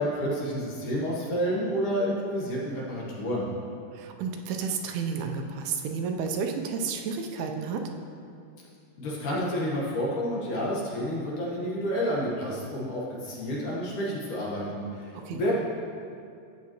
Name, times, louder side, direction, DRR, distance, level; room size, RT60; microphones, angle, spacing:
voice 1, 0.0-3.5 9.0-15.6, equal, 60° left, -5 dB, 2.5 m, -29 dB
voice 2, 3.9-7.9 15.1-15.6, right 5 dB, 85° right, 3 dB, 2.7 m, -31 dB
13.5 x 8.3 x 3.0 m, 2.4 s
omnidirectional pair, 4.5 m